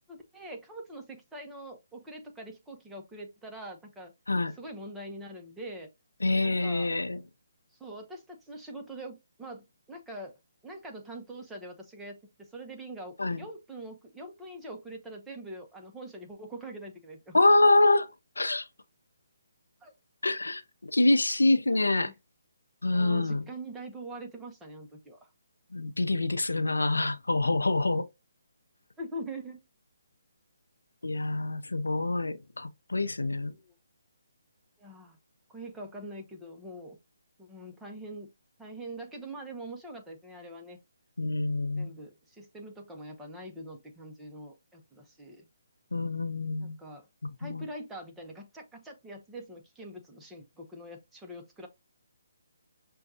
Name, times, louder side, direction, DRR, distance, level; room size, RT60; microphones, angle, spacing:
voice 1, 0.1-4.1 4.6-5.9 6.4-6.9 7.7-10.3 10.6-17.4 19.8-19.9 21.7-22.1 22.9-25.2 29.0-29.6 33.3-33.7 34.8-35.2 35.5-37.0 37.4-38.3 38.6-40.8 41.8-45.4 46.6-47.1 47.4-51.7, right 1 dB, 5° right, 0.7 m, -43 dB
voice 2, 6.2-7.2 13.2-13.5 17.3-18.1 18.4-18.7 20.2-22.1 22.8-23.5 25.7-28.1 31.0-33.5 41.2-41.9 45.9-46.8 47.4-47.7, left 2 dB, 90° left, 0.5 m, -26 dB
6.1 x 2.3 x 2.7 m
figure-of-eight pair, 150°, 0 cm